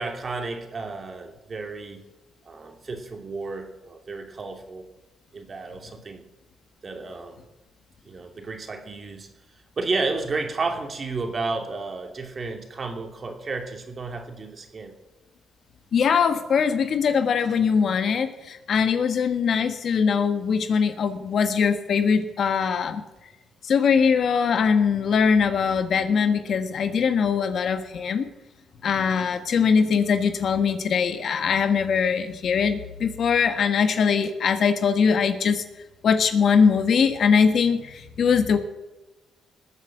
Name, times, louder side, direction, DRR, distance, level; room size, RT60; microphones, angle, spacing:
voice 1, 0.0-2.0 2.5-4.9 5.3-6.2 6.8-7.4 8.0-9.3 9.8-14.9, right 3 dB, 40° right, 4 dB, 2.8 m, -32 dB
voice 2, 15.9-23.0 23.6-28.3 28.8-35.6 36.0-38.6, left 6 dB, 60° left, 9 dB, 1.4 m, -21 dB
19.5 x 8.0 x 7.4 m, 1.1 s
cardioid pair, 90°, 0 cm